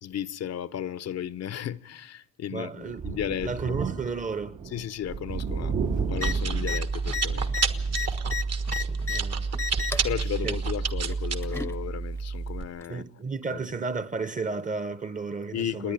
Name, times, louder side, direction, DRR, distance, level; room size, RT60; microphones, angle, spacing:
voice 1, 0.0-3.8 4.7-5.8 6.1-7.5 8.0-8.2 10.0-13.0 13.5-13.6 15.5-15.9, left 10 dB, 60° left, 0.7 m, -34 dB
voice 2, 2.5-4.6 8.9-9.5 10.4-10.6 12.9-15.9, right 4 dB, 25° right, 0.9 m, -33 dB
Thunder, 2.9-8.0 8.4-8.5 9.9-10.0, right 6 dB, 80° right, 2.9 m, -34 dB
Chewing mastication, 5.4-12.6, right 5 dB, 55° right, 1.5 m, -29 dB
sound 1, 6.2-6.3 6.6-6.8 7.1-9.2 9.5-10.1 11.1-11.8 12.8-12.9, left 5 dB, 10° left, 0.7 m, -32 dB
28.0 x 10.0 x 9.9 m
cardioid pair, 90°, 30 cm